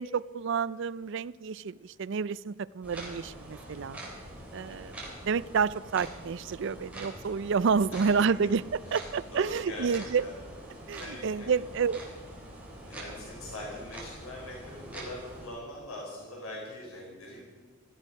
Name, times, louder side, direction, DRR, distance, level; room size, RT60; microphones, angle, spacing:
voice 1, 0.0-4.0 4.5-8.6 8.9-10.3 10.9-12.0, right 5 dB, 60° right, 19 dB, 0.4 m, -29 dB
sound 1, 2.8-15.5, right 1 dB, 5° right, 3.7 m, -45 dB
voice 2, 4.6-5.0 7.9-8.1 8.4-8.5 8.8-10.4 10.7-11.5 12.9-17.4, left 1 dB, 90° left, -3 dB, 4.7 m, -43 dB
16.5 x 14.5 x 5.4 m, 1.5 s
head